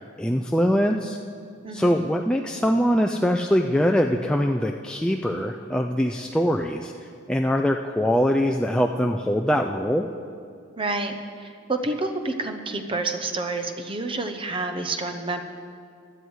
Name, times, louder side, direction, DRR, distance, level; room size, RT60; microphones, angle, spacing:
voice 1, 0.2-1.2 1.7-6.9 7.3-10.1, equal, 5° left, 2 dB, 0.3 m, -23 dB
voice 2, 1.6-2.1 10.8-15.4, right 2 dB, 25° right, 7 dB, 0.8 m, -29 dB
16.0 x 11.0 x 4.8 m, 2.3 s
head